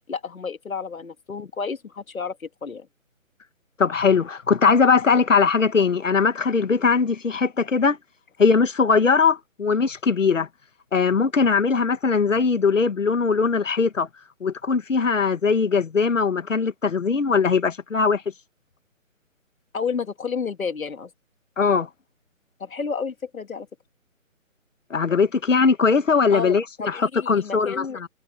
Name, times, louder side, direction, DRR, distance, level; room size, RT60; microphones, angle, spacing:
voice 1, 0.1-2.9 19.7-21.1 22.6-23.7 26.3-28.0, left 5 dB, 80° left, 2.1 m, -31 dB
voice 2, 3.8-8.0 8.4-10.5 10.9-14.1 14.4-18.2 21.6-21.9 24.9-28.1, left 5 dB, 65° left, 1.7 m, -20 dB
hypercardioid pair, 180°, 41 cm